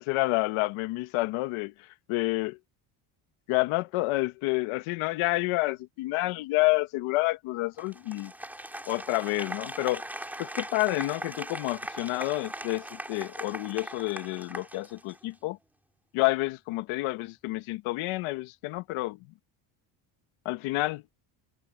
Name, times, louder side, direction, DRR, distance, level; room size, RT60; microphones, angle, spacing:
voice 1, 0.0-1.7 2.1-2.6 3.5-8.3 8.9-10.0 10.4-15.6 16.1-19.2 20.4-21.0, left 21 dB, 85° left, 1.1 m, -29 dB
Applause, 7.8-15.3, right 1 dB, 5° right, 2.5 m, -40 dB
open air
cardioid pair, 160°, 48 cm